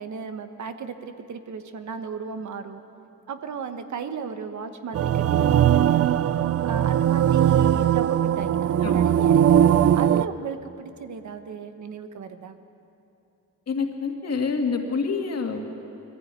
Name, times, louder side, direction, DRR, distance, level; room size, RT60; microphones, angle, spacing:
voice 1, 0.0-2.8 3.3-6.1 6.6-9.6 9.9-12.6, right 6 dB, 65° right, 9 dB, 1.2 m, -35 dB
sound 1, 4.9-10.3, right 10 dB, 50° right, 0.4 m, -20 dB
voice 2, 13.7-15.7, left 4 dB, 55° left, 3 dB, 2.1 m, -27 dB
21.5 x 15.0 x 9.0 m, 2.8 s
wide cardioid pair, 150°, 31 cm